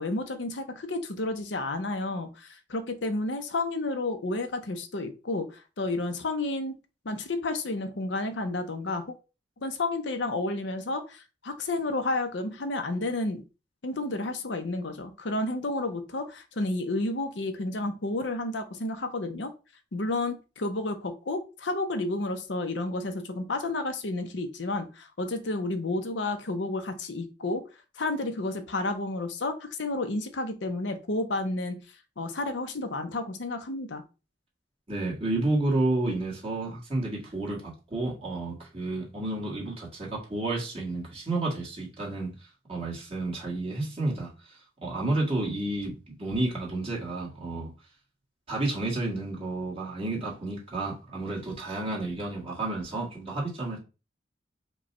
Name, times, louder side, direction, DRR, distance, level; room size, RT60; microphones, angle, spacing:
voice 1, 0.0-6.7 7.0-9.1 9.6-13.4 13.8-19.5 19.9-27.6 28.0-31.8 32.2-34.0, left 2 dB, 75° left, 0.7 m, -31 dB
voice 2, 34.9-42.3 42.7-44.3 44.8-47.7 48.5-53.8, right 2 dB, 30° right, 1.8 m, -31 dB
5.0 x 2.3 x 4.1 m
head